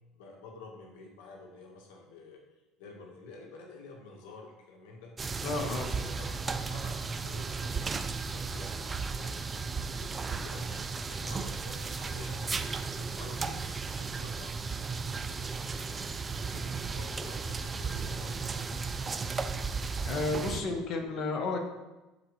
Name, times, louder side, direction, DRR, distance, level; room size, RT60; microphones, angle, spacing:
voice 1, 0.1-2.4 2.8-5.2 5.5-7.6 8.2-8.8 9.2-9.4 9.8-12.4 12.9-13.6 14.0-14.6 15.0-19.1 20.3-20.9, left 3 dB, 80° left, 0 dB, 1.5 m, -50 dB
sound 1, 5.2-20.6, right 4 dB, 25° right, 0.5 m, -35 dB
voice 2, 5.4-5.9 20.1-21.6, left 3 dB, 55° left, 2 dB, 1.7 m, -32 dB
12.5 x 4.3 x 3.2 m, 1.1 s
supercardioid pair, 90°, 0 cm